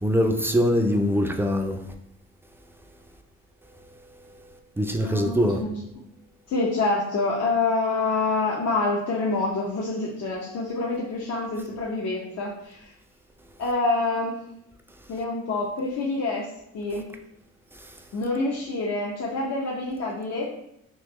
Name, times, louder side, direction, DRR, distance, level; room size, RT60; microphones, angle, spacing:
voice 1, 0.0-1.8 4.8-5.6, equal, 10° right, 0.4 m, -22 dB
voice 2, 5.0-6.0 6.5-12.9 13.6-14.4 15.1-16.5 16.7-17.1 18.1-20.5, left 3 dB, 55° left, 0.7 m, -27 dB
3.5 x 2.8 x 3.1 m
cardioid pair, 90°, 30 cm